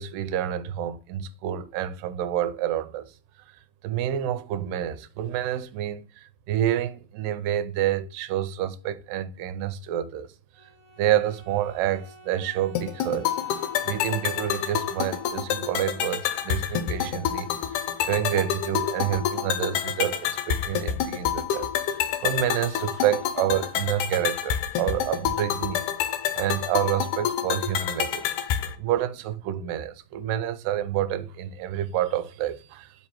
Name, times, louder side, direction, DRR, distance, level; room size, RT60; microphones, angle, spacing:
voice 1, 0.0-3.1 3.5-3.6 3.8-10.3 10.6-10.7 11.0-13.6 13.9-25.9 26.3-28.3 28.8-33.1, right 11 dB, 85° right, 2.2 m, -28 dB
Bowed string instrument, 10.5-15.8, right 2 dB, 35° right, 2.5 m, -50 dB
sound 1, 12.8-28.8, left 9 dB, 75° left, 2.0 m, -28 dB
5.1 x 4.3 x 6.0 m
omnidirectional pair, 4.0 m